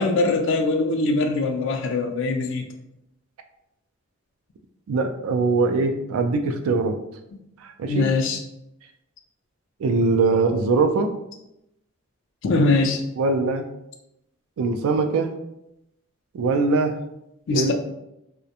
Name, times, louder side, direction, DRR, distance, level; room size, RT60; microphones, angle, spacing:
voice 1, 0.0-2.7 7.9-8.4 12.4-13.0 17.5-17.7, left 3 dB, 60° left, 5 dB, 0.3 m, -22 dB
voice 2, 4.9-7.0 7.6-8.1 9.8-11.1 13.2-13.7 14.6-15.3 16.3-17.0 17.5-17.7, right 3 dB, 85° right, 7 dB, 0.3 m, -22 dB
2.4 x 2.1 x 2.7 m, 0.84 s
head